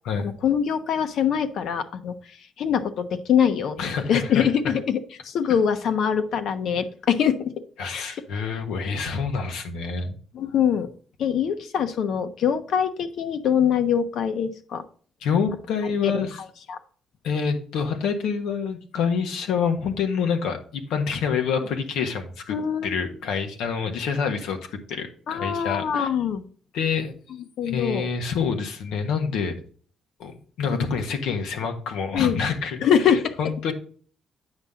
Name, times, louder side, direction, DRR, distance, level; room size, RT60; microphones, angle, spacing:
voice 1, 0.2-2.1 2.6-3.8 4.1-5.0 5.2-7.5 7.9-8.0 10.3-10.9 11.2-14.8 16.0-16.2 16.7-16.8 22.5-23.1 25.3-26.4 27.6-28.0 32.1-32.4 32.8-33.3, left 8 dB, 70° left, 9 dB, 1.0 m, -23 dB
voice 2, 3.8-4.7 7.8-10.2 15.2-16.4 17.2-22.5 22.8-24.6 24.9-26.1 26.7-27.1 27.6-29.5 30.2-33.7, left 6 dB, 90° left, 5 dB, 1.5 m, -27 dB
8.8 x 5.8 x 3.7 m, 0.44 s
cardioid pair, 90°, 0 cm